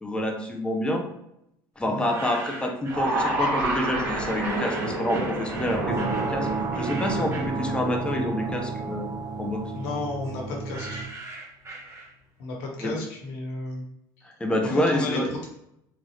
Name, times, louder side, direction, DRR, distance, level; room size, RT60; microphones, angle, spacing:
voice 1, 0.0-1.0 1.8-9.1 9.4-9.6 12.8-12.9 14.2-15.3, left 1 dB, 10° left, 2 dB, 0.7 m, -27 dB
sound 1, 1.8-3.1 4.1-8.3 8.7-12.4, right 2 dB, 25° right, 1.1 m, -41 dB
sound 2, 2.8-9.1, right 2 dB, 85° right, 1.4 m, -30 dB
sound 3, 5.5-11.0, right 4 dB, 50° right, 1.2 m, -31 dB
voice 2, 9.7-11.1 12.4-13.8 14.7-15.5, left 2 dB, 80° left, -1 dB, 1.2 m, -33 dB
3.8 x 2.7 x 3.2 m, 0.80 s
supercardioid pair, 95°, 10 cm